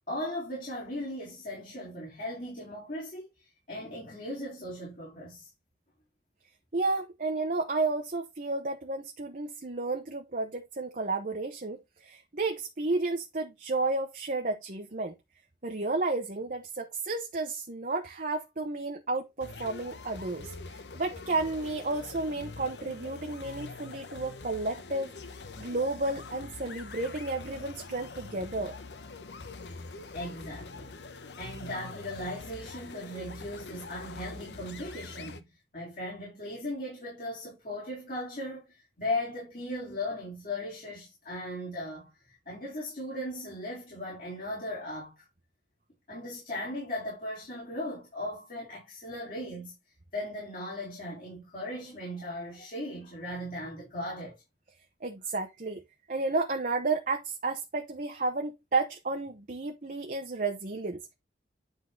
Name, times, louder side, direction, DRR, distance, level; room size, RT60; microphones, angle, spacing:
voice 1, 0.1-5.5 30.1-30.9 31.4-35.4 35.7-45.3 46.1-49.8 50.1-54.4, left 1 dB, 50° left, 4.0 m, -38 dB
voice 2, 6.7-15.1 15.6-25.1 25.6-28.8 55.0-55.8 56.1-61.1, right 3 dB, 50° right, 1.0 m, -32 dB
sound 1, 19.4-35.4, left 3 dB, 80° left, 0.9 m, -44 dB
9.9 x 3.9 x 3.9 m
head